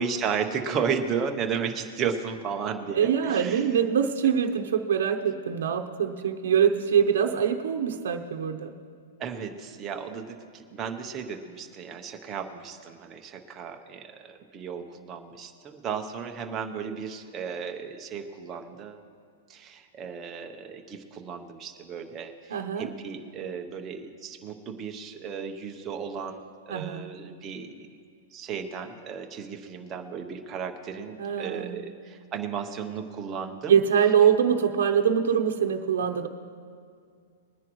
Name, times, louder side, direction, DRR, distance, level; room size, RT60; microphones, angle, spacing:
voice 1, 0.0-3.6 9.2-19.0 19.5-26.4 26.7-27.9 28.3-33.8, right 6 dB, 15° right, 3 dB, 0.8 m, -34 dB
voice 2, 2.9-8.7 22.5-22.9 26.7-27.1 31.2-31.8 33.7-36.3, right 8 dB, 75° right, 3 dB, 0.8 m, -24 dB
21.0 x 10.0 x 3.1 m, 2.2 s
supercardioid pair, 175°, 0 cm